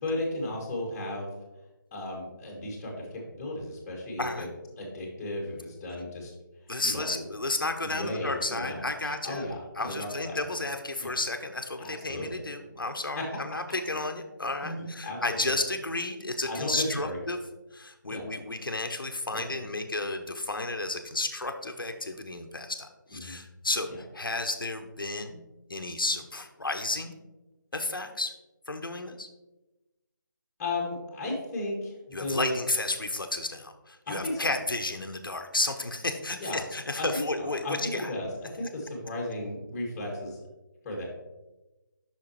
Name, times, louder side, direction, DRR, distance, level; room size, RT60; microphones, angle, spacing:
voice 1, 0.0-1.3 1.9-4.5 4.8-6.3 6.8-7.2 7.8-10.4 11.0-11.1 11.8-12.4 13.1-13.2 14.6-15.4 16.5-17.2 18.1-18.2 19.3-19.4 23.1-23.4 23.9-24.0 30.6-32.6 34.1-34.5 36.4-36.6 37.0-38.3 38.5-40.4 40.8-41.0, left 1 dB, 15° left, -2 dB, 1.7 m, -35 dB
voice 2, 6.7-9.5 9.8-17.4 17.7-25.4 25.7-27.1 27.7-28.3 28.7-29.3 32.1-38.1, left 2 dB, 85° left, 6 dB, 0.8 m, -32 dB
8.3 x 6.1 x 3.0 m, 1.1 s
figure-of-eight pair, 155°, 11 cm